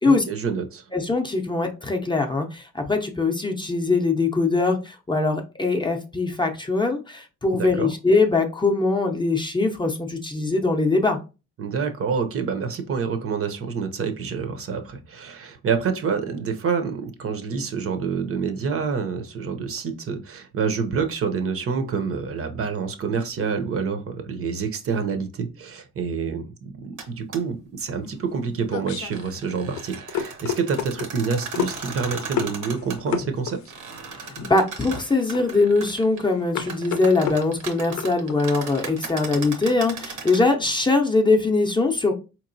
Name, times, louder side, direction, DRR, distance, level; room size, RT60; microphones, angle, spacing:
voice 1, 0.1-0.8 7.6-7.9 11.6-33.6, right 5 dB, 50° right, 0.6 m, -27 dB
voice 2, 0.9-11.2 34.3-42.1, left 3 dB, 15° left, 0.6 m, -22 dB
sound 1, 27.0-27.1 27.3-27.4 28.9-33.0 33.7-36.2 36.5-40.4, right 5 dB, 80° right, 1.0 m, -37 dB
sound 2, 28.0-38.4, left 7 dB, 70° left, 0.6 m, -32 dB
4.0 x 2.9 x 2.6 m
cardioid pair, 90°, 30 cm